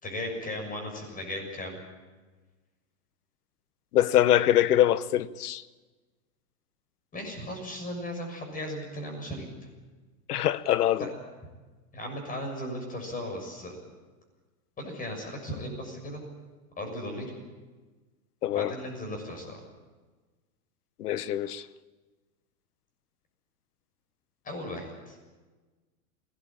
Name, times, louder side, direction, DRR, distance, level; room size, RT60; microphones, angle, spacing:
voice 1, 0.0-1.8 4.0-4.1 7.1-9.7 11.0-11.1 11.9-13.8 14.8-16.2 16.8-17.4 18.5-19.6 24.4-25.2, left 1 dB, 20° left, 6.7 m, -36 dB
voice 2, 3.9-5.6 10.3-11.0 18.4-18.7 21.0-21.6, left 12 dB, 85° left, 1.0 m, -23 dB
21.5 x 18.0 x 8.8 m
supercardioid pair, 135°, 45 cm